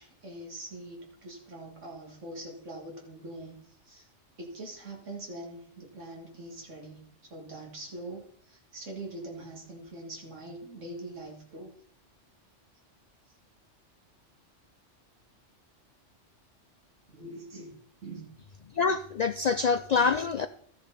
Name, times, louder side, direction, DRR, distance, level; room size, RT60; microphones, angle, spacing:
voice 1, 0.0-4.1 4.4-11.7 17.1-18.3, right 1 dB, 80° right, 0 dB, 2.4 m, -43 dB
voice 2, 18.8-20.5, left 5 dB, 75° left, 10 dB, 0.3 m, -26 dB
13.5 x 6.8 x 4.0 m, 0.65 s
omnidirectional pair, 1.3 m